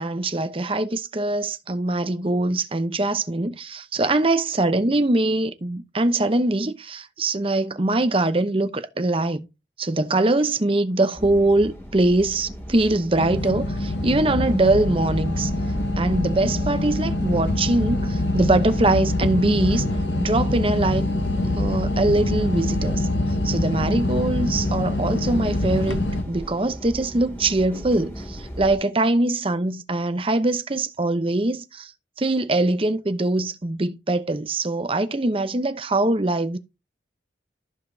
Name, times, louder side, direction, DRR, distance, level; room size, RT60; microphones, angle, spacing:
voice 1, 0.0-9.5 9.8-15.5 16.0-19.8 20.2-21.1 21.5-23.1 23.4-31.9 32.2-36.6, right 2 dB, 30° right, 0.8 m, -22 dB
sound 1, 11.1-28.8, equal, 15° left, 2.5 m, -37 dB
sound 2, 13.2-26.2, left 1 dB, 80° left, 1.1 m, -24 dB
14.5 x 5.0 x 2.7 m
head